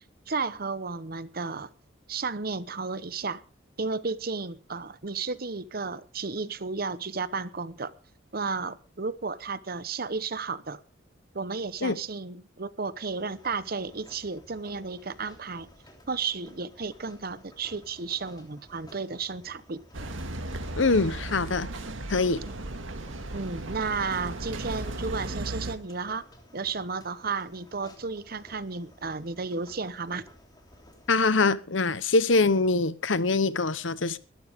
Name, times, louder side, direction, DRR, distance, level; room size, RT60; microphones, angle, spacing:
voice 1, 0.3-1.7 2.1-3.4 3.8-7.9 8.3-10.8 11.3-15.7 16.1-19.8 23.3-26.2 26.5-30.2, right 4 dB, 50° right, 0.9 m, -33 dB
sound 1, 13.1-31.2, left 1 dB, 20° left, 3.3 m, -55 dB
sound 2, 19.9-25.8, right 1 dB, 85° right, 1.9 m, -36 dB
voice 2, 20.8-21.7 22.1-22.4 31.1-34.2, left 3 dB, 75° left, 0.9 m, -24 dB
21.5 x 12.5 x 3.6 m
head